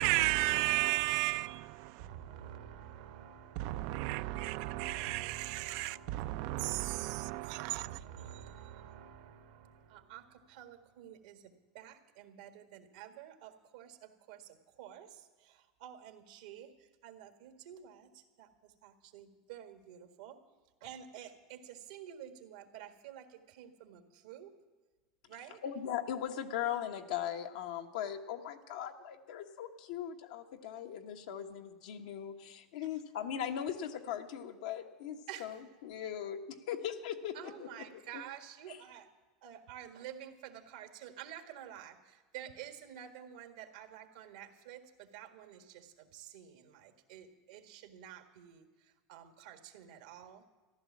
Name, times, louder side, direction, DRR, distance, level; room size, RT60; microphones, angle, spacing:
voice 1, 0.0-2.1 3.6-8.0, right 18 dB, 65° right, 0.4 m, -33 dB
voice 2, 2.0-7.5 7.7-20.4 20.8-24.5 25.3-25.6 35.3-35.5 37.3-39.1 39.4-50.4, right 10 dB, 80° right, 1.7 m, -50 dB
voice 3, 25.6-37.9 38.1-38.2 38.7-38.8, left 9 dB, 80° left, 1.2 m, -39 dB
14.5 x 11.5 x 7.2 m
supercardioid pair, 115°, 4 cm